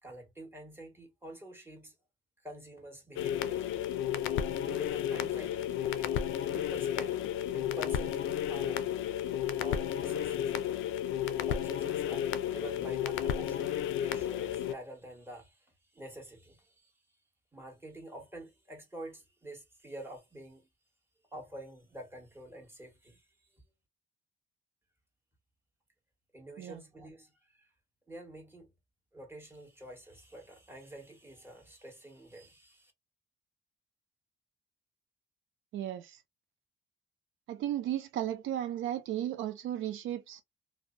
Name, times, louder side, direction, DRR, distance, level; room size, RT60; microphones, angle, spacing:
voice 1, 0.0-2.0 2.4-3.6 4.6-6.2 6.5-9.0 9.5-10.5 11.5-16.9 17.5-20.7 21.3-23.6 26.3-27.7 28.1-28.7 29.1-32.9, right 1 dB, 10° right, 1.4 m, -48 dB
sound 1, 3.2-14.7, left 10 dB, 85° left, 0.4 m, -32 dB
voice 2, 35.7-36.2 37.5-40.4, right 12 dB, 80° right, 0.5 m, -35 dB
2.5 x 2.1 x 2.5 m
cardioid pair, 90°, 20 cm